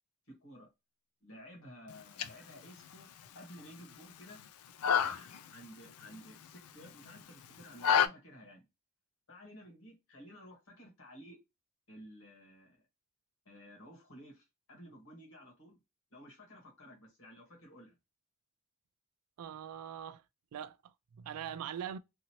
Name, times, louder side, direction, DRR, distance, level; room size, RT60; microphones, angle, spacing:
voice 1, 0.3-0.7 1.2-3.1 3.3-4.4 5.0-8.6 9.3-11.4 11.9-12.8 13.4-15.8 16.1-17.9, equal, 65° left, 1.5 m, -53 dB
sound 1, 1.9-8.1, left 8 dB, 80° left, 0.4 m, -34 dB
voice 2, 19.4-20.2 20.5-22.0, right 9 dB, 80° right, 0.3 m, -42 dB
2.7 x 2.6 x 2.9 m
head